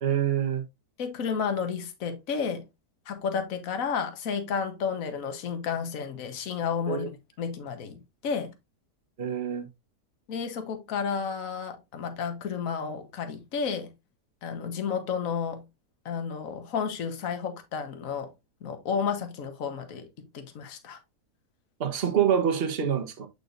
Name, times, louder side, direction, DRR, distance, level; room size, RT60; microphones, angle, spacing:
voice 1, 0.0-0.6 6.9-7.1 9.2-9.7 21.8-23.3, right 8 dB, 40° right, 1.2 m, -26 dB
voice 2, 1.0-2.6 3.1-8.5 10.3-13.9 14.4-15.6 16.0-18.3 18.6-20.1 20.3-21.0, left 6 dB, 55° left, 1.5 m, -32 dB
8.3 x 5.1 x 2.6 m
omnidirectional pair, 1.8 m